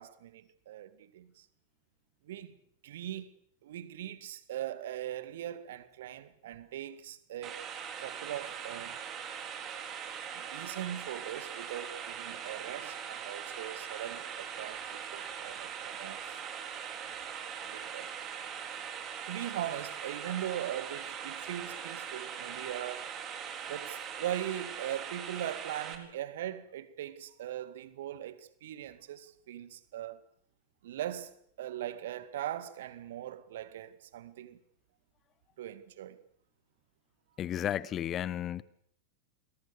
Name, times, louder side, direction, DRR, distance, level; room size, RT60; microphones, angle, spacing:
voice 1, 0.0-1.5 2.2-2.6 2.8-3.3 3.6-7.6 8.0-9.0 10.3-16.4 17.7-18.1 19.3-23.1 23.7-30.2 30.8-34.6 35.6-36.2, right 12 dB, 55° right, 2.0 m, -40 dB
sound 1, 7.4-26.0, right 8 dB, 30° right, 4.1 m, -41 dB
voice 2, 37.4-38.6, left 11 dB, 30° left, 1.1 m, -33 dB
29.5 x 21.5 x 6.9 m
figure-of-eight pair, 90°, 0 cm